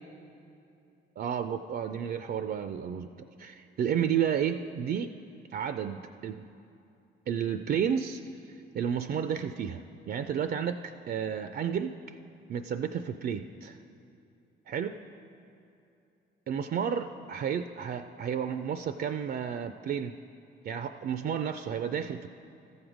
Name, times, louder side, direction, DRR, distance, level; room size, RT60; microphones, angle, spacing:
voice 1, 1.2-3.1 3.4-5.1 5.5-6.4 7.3-8.2 8.7-12.2 12.5-13.8 14.7-14.9 16.5-20.1 20.6-22.3, right 8 dB, 50° right, 9 dB, 0.4 m, -31 dB
14.0 x 6.3 x 5.0 m, 2.7 s
cardioid pair, 90°, 20 cm